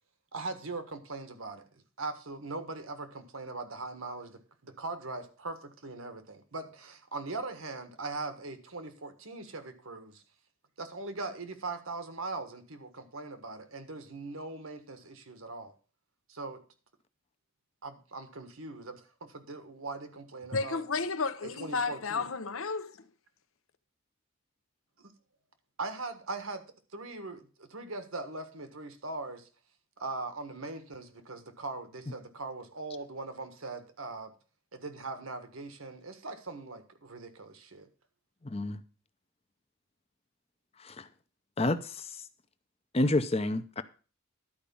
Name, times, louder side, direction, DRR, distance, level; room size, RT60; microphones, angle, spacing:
voice 1, 0.3-10.2 10.8-15.7 16.3-16.6 17.8-20.8 21.6-22.2 25.0-25.1 25.8-26.6 26.9-29.5 30.0-34.3 34.7-37.9, right 3 dB, 80° right, 1.5 m, -40 dB
voice 2, 20.5-23.0, left 4 dB, 75° left, 0.9 m, -32 dB
voice 3, 38.4-38.8 40.8-41.1 41.6-42.1 42.9-43.8, left 2 dB, 30° left, 0.7 m, -29 dB
12.0 x 5.0 x 7.0 m
head